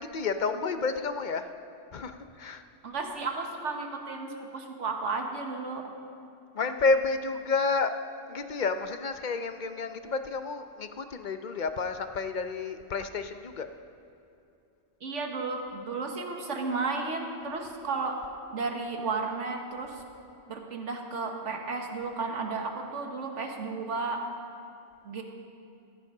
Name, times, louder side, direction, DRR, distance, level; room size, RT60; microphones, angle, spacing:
voice 1, 0.0-1.5 1.9-2.1 2.4-2.6 6.6-7.9 8.3-13.7, left 4 dB, 50° left, 8 dB, 0.6 m, -30 dB
voice 2, 2.8-5.8 15.0-18.2 18.5-20.0 20.5-24.2 25.0-25.2, right 4 dB, 75° right, 3 dB, 1.6 m, -33 dB
15.5 x 14.5 x 3.8 m, 2.6 s
omnidirectional pair, 1.3 m